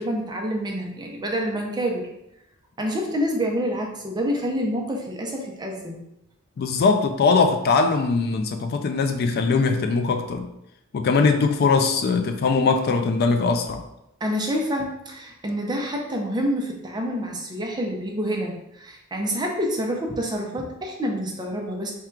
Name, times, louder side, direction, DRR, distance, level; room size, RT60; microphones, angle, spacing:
voice 1, 0.0-2.1 2.8-6.0 14.2-21.9, equal, 20° right, 1 dB, 0.6 m, -27 dB
voice 2, 6.6-10.5 10.9-13.8, left 4 dB, 45° left, 6 dB, 0.3 m, -21 dB
3.5 x 2.2 x 4.4 m, 0.85 s
head